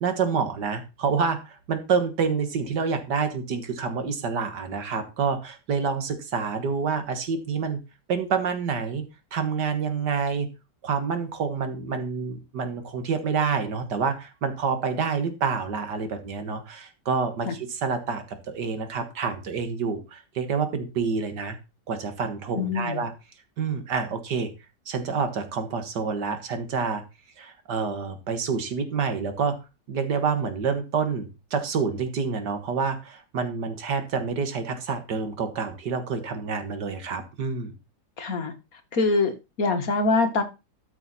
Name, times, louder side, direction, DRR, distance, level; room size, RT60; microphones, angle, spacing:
voice 1, 0.0-7.8 8.1-9.0 9.3-10.5 10.8-21.6 21.9-23.1 23.6-24.5 24.9-27.0 27.4-29.6 29.9-37.7, right 5 dB, 65° right, 8 dB, 2.0 m, -28 dB
voice 2, 22.5-23.0 38.2-38.5 38.9-40.4, left 3 dB, 50° left, 6 dB, 1.8 m, -24 dB
13.0 x 5.9 x 4.1 m, 0.28 s
omnidirectional pair, 2.0 m